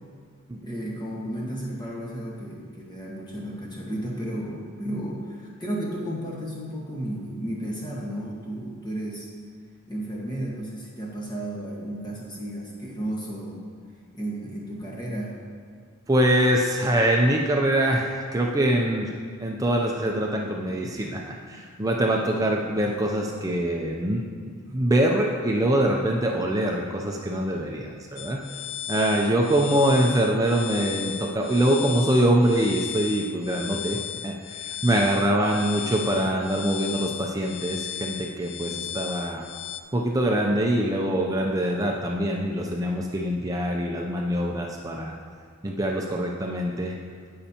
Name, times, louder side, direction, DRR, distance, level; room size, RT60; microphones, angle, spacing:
voice 1, 0.6-9.3 9.9-13.6 14.1-15.4, right 1 dB, 20° left, -4 dB, 1.5 m, -33 dB
voice 2, 16.1-19.1 19.4-28.6 28.9-39.5 39.9-45.2 45.6-47.0, right 1 dB, 15° right, 0 dB, 0.5 m, -24 dB
sound 1, 28.2-39.8, left 11 dB, 65° left, 0.4 m, -36 dB
15.0 x 5.4 x 2.9 m, 2.1 s
head